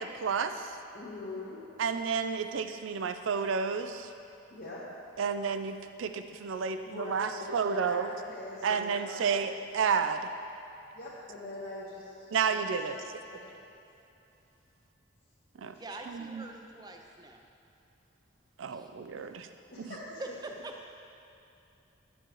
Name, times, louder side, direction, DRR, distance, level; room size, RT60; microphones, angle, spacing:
voice 1, 0.0-0.7 1.8-4.1 5.2-8.1 8.6-10.3 12.3-12.9 15.6-15.7 16.1-16.4 18.6-19.5 19.8-19.9, right 6 dB, 80° right, 8 dB, 0.4 m, -31 dB
voice 2, 0.9-1.7 4.5-5.2 6.8-9.4 10.9-13.0 13.3-13.6 15.7-15.8 19.7-20.2, left 2 dB, 50° left, -9 dB, 1.0 m, -43 dB
voice 3, 15.8-17.4 18.7-18.9 20.2-20.9, right 2 dB, 20° right, 3 dB, 0.5 m, -43 dB
10.0 x 7.1 x 3.0 m, 2.8 s
head